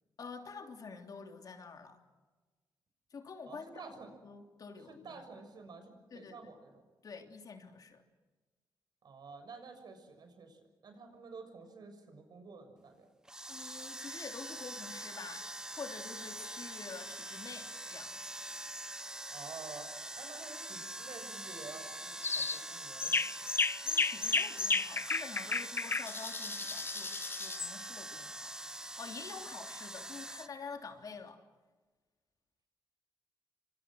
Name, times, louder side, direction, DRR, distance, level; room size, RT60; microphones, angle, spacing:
voice 1, 0.2-2.0 3.1-3.8 4.2-5.2 6.1-6.4 7.0-8.0 13.5-18.2 23.8-31.4, left 5 dB, 50° left, 4 dB, 3.2 m, -48 dB
voice 2, 3.5-4.1 4.8-6.8 9.0-13.1 19.3-23.5, right 4 dB, 60° right, 6 dB, 6.8 m, -50 dB
sound 1, 13.2-30.5, right 1 dB, 10° right, 1.0 m, -44 dB
sound 2, 22.2-22.6 23.0-27.7, left 4 dB, 30° left, 0.8 m, -33 dB
29.5 x 25.5 x 6.4 m, 1.3 s
wide cardioid pair, 120°, 8 cm